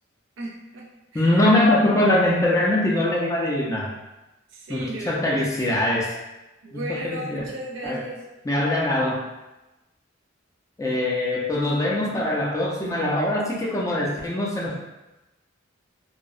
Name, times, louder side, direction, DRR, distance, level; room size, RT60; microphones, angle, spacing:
voice 1, 0.4-1.5 4.5-5.5 6.6-8.2 12.0-12.3, right 1 dB, 75° right, -1 dB, 0.5 m, -36 dB
voice 2, 1.1-3.9 4.7-6.1 6.7-7.5 7.8-8.0 8.5-9.2 10.8-14.8, left 1 dB, 15° left, -3 dB, 0.3 m, -22 dB
2.6 x 2.0 x 2.4 m, 1.0 s
head